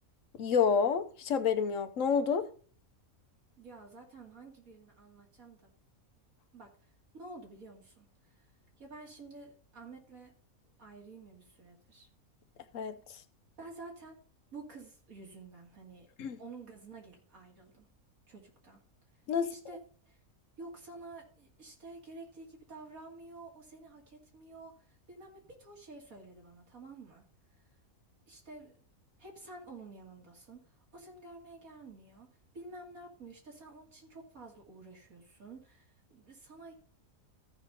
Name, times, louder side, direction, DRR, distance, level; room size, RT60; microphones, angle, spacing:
voice 1, 0.4-2.5 12.7-13.0 16.2-16.4 19.3-19.5, left 6 dB, 65° left, 1.1 m, -28 dB
voice 2, 3.6-5.6 6.5-8.5 8.8-10.3 10.8-12.1 13.6-14.2 14.5-16.1 16.4-17.9 18.3-18.8 19.3-20.2 20.6-27.3 27.5-27.7 28.3-28.9 29.2-32.3 32.5-36.7, right 3 dB, 75° right, 2.9 m, -50 dB
14.0 x 5.4 x 4.2 m
omnidirectional pair, 1.5 m